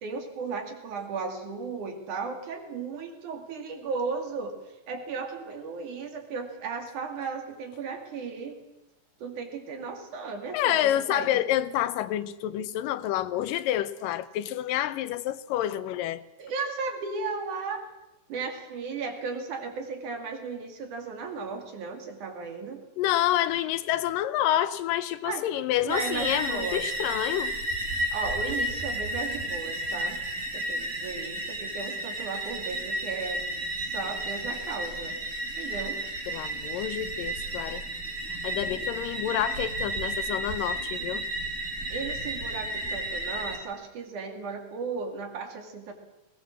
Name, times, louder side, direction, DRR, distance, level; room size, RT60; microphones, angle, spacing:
voice 1, 0.0-8.6 9.2-11.4 16.4-17.9 18.3-22.8 25.2-25.4 25.8-26.9 28.1-30.2 30.5-33.4 33.8-35.1 35.6-36.0 41.9-45.9, right 4 dB, 65° right, 4.0 m, -35 dB
voice 2, 10.5-16.2 23.0-27.5 36.3-37.8 38.4-41.3, left 12 dB, 85° left, 2.5 m, -28 dB
sound 1, 25.9-43.6, right 1 dB, 25° right, 3.0 m, -32 dB
20.0 x 19.0 x 7.5 m
omnidirectional pair, 3.8 m